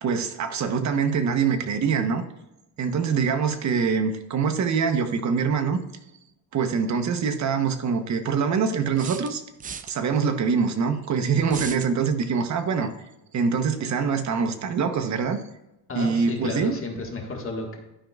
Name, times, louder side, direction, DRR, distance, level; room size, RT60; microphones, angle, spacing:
voice 1, 0.0-2.2 2.8-5.8 6.5-9.4 9.9-12.9 13.3-15.4 15.9-16.7, right 6 dB, 45° right, 6 dB, 1.0 m, -24 dB
sound 1, 6.9-7.0 9.0-9.9 11.5-11.9, right 6 dB, 25° right, 0.3 m, -37 dB
voice 2, 15.9-17.8, left 2 dB, 35° left, 1 dB, 1.7 m, -32 dB
12.5 x 5.2 x 2.4 m, 0.92 s
cardioid pair, 120°, 39 cm